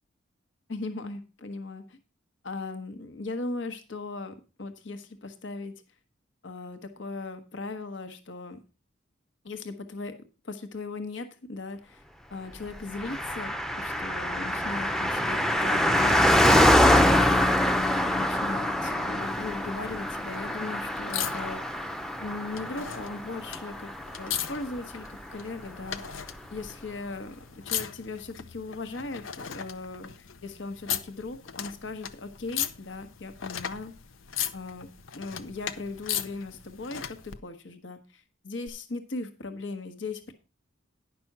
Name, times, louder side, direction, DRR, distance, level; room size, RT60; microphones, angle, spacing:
voice 1, 0.7-2.0 2.4-5.7 6.4-8.6 9.4-10.1 10.4-12.0 12.3-16.9 17.2-21.9 22.2-23.9 24.2-26.2 26.5-33.9 34.5-34.9 35.1-40.3, left 3 dB, 70° left, 9 dB, 1.2 m, -38 dB
Car passing by, 12.9-24.8 25.0-25.1, left 1 dB, ahead, 0.6 m, -24 dB
sound 1, 19.2-37.4 38.7-38.8, left 9 dB, 90° left, 0.9 m, -38 dB
10.5 x 6.1 x 5.9 m, 0.32 s
head